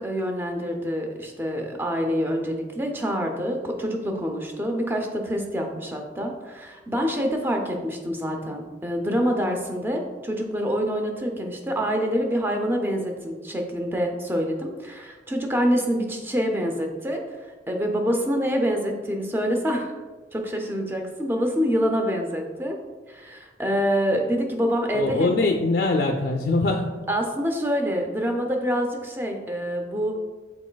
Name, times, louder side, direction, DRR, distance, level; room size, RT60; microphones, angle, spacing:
voice 1, 0.0-17.2 17.7-19.9 20.3-22.8 23.1-25.3 27.1-30.2, equal, 15° right, 2 dB, 0.5 m, -26 dB
voice 2, 24.9-27.0, left 2 dB, 60° left, 2 dB, 0.3 m, -23 dB
6.1 x 3.9 x 2.2 m, 1.3 s
head